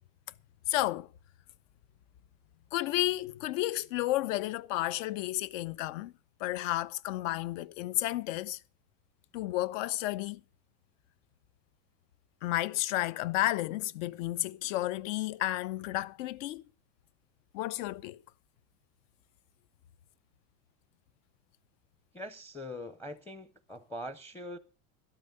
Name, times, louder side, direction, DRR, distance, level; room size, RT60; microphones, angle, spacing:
voice 1, 0.7-1.1 2.7-6.1 6.4-8.6 9.3-10.4 12.4-16.6 17.5-18.2, left 16 dB, 75° left, 0.8 m, -32 dB
voice 2, 22.1-24.6, left 1 dB, 5° left, 0.6 m, -42 dB
12.5 x 12.5 x 5.3 m
supercardioid pair, 150°, 39 cm